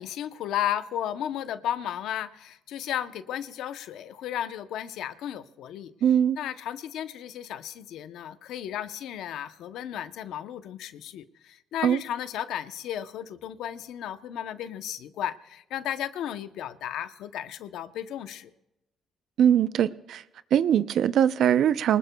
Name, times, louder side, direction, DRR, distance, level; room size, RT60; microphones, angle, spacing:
voice 1, 0.0-5.9 6.4-18.5, left 10 dB, 85° left, 0.7 m, -34 dB
voice 2, 6.0-6.4 11.8-12.0 19.4-20.2 20.5-22.0, right 9 dB, 75° right, 0.5 m, -21 dB
24.5 x 20.0 x 2.3 m
cardioid pair, 90°, 0 cm